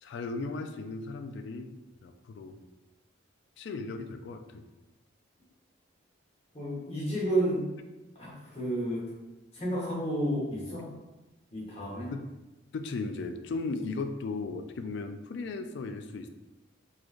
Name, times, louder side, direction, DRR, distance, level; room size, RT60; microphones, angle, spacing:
voice 1, 0.0-1.8 2.0-2.7 3.6-4.7 12.1-12.2 12.7-16.3, left 3 dB, 60° left, 7 dB, 0.3 m, -36 dB
voice 2, 6.5-7.7 8.1-9.1 9.5-10.9 11.5-12.1, right 1 dB, 30° left, -6 dB, 1.2 m, -31 dB
3.9 x 3.1 x 2.5 m, 1.0 s
head